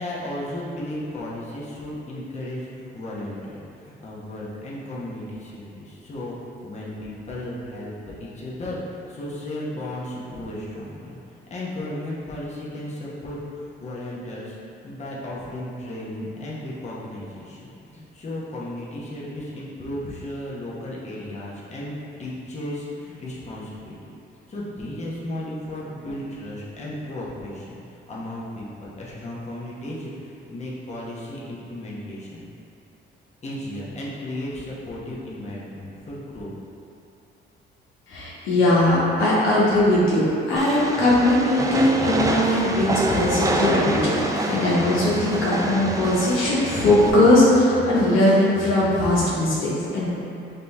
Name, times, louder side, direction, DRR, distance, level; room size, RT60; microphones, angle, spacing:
voice 1, 0.0-6.3 6.6-8.8 9.1-11.2 11.5-14.6 14.8-21.9 22.2-23.9 24.5-27.8 28.1-32.5 33.4-36.5, left 1 dB, 35° left, -6 dB, 0.9 m, -34 dB
voice 2, 38.1-40.2 40.5-50.1, left 1 dB, 90° left, -7 dB, 1.1 m, -20 dB
Train, 40.6-47.1, right 1 dB, 15° right, 0.4 m, -26 dB
sound 1, 41.7-49.4, equal, 60° left, 1.1 m, -37 dB
5.2 x 2.8 x 3.3 m, 2.7 s
cardioid pair, 90°, 20 cm